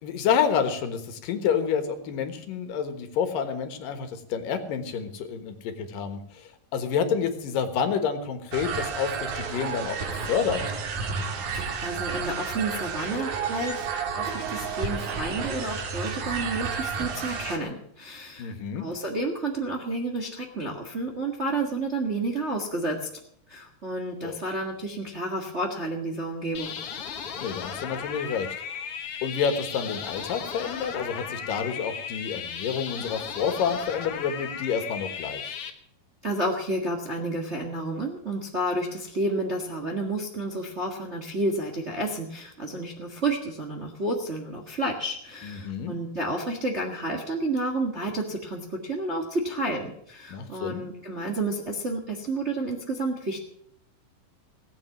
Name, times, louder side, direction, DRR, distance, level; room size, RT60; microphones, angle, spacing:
voice 1, 0.0-10.6 18.4-18.9 24.2-24.4 27.4-28.5 29.2-35.6 45.4-45.9 50.3-50.8, left 7 dB, 80° left, 8 dB, 3.1 m, -29 dB
sound 1, 8.5-17.6, right 5 dB, 90° right, 3.6 m, -31 dB
voice 2, 11.5-13.9 14.1-23.1 23.5-26.8 36.2-53.4, right 2 dB, 30° right, 2 dB, 1.2 m, -30 dB
sound 2, 26.5-35.7, left 7 dB, 55° left, 1.8 m, -36 dB
18.0 x 8.6 x 7.3 m, 0.72 s
omnidirectional pair, 3.9 m